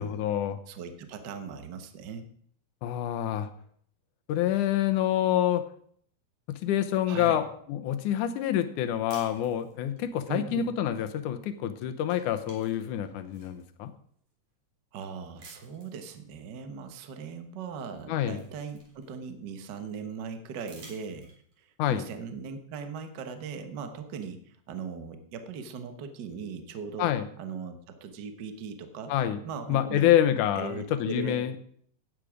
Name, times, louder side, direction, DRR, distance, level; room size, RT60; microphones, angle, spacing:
voice 1, 0.0-0.6 2.8-3.5 4.3-5.6 6.5-13.9 18.1-18.4 21.8-22.1 27.0-27.3 29.1-29.4 29.7-31.6, left 11 dB, 70° left, 9 dB, 2.3 m, -27 dB
voice 2, 0.7-2.3 7.1-7.4 10.3-10.6 14.9-21.3 21.6-27.1 27.4-29.1 29.4-30.1 30.5-31.4, right 5 dB, 70° right, 7 dB, 1.0 m, -39 dB
sound 1, 9.1-10.1 11.5-11.7 12.0-13.6 14.3-14.4 15.4-16.0 17.4-17.5 17.9-19.5 20.5-21.6, right 2 dB, 50° right, 4.6 m, -53 dB
15.0 x 9.4 x 5.0 m, 0.62 s
omnidirectional pair, 3.9 m